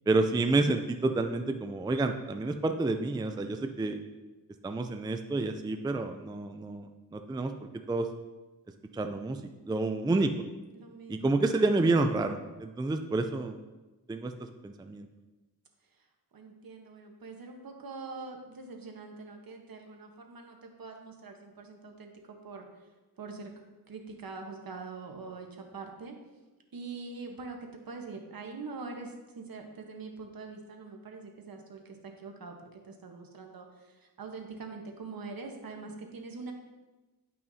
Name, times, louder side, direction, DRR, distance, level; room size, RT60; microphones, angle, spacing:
voice 1, 0.1-4.0 4.6-7.5 7.9-8.1 8.9-9.4 9.7-10.3 11.1-13.6 14.1-15.1, right 2 dB, 10° right, 6 dB, 0.4 m, -29 dB
voice 2, 10.7-11.5 12.2-12.5 15.9-16.1 16.3-22.9 23.2-23.5 23.9-26.1 26.7-36.5, right 4 dB, 65° right, 3 dB, 1.2 m, -44 dB
10.5 x 5.6 x 2.7 m, 1.2 s
wide cardioid pair, 80°, 38 cm